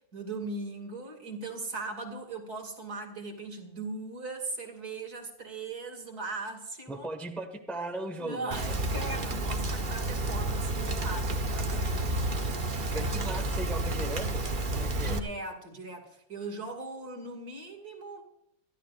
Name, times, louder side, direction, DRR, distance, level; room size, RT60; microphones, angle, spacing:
voice 1, 0.1-7.1 8.2-13.1 15.0-18.2, right 3 dB, 50° right, 4 dB, 2.9 m, -39 dB
voice 2, 6.9-8.8 12.9-14.4 14.7-15.2, right 2 dB, ahead, 3 dB, 1.3 m, -37 dB
Rain, 8.5-15.2, right 1 dB, 30° right, 1.1 m, -30 dB
24.5 x 14.0 x 2.5 m, 0.77 s
omnidirectional pair, 2.2 m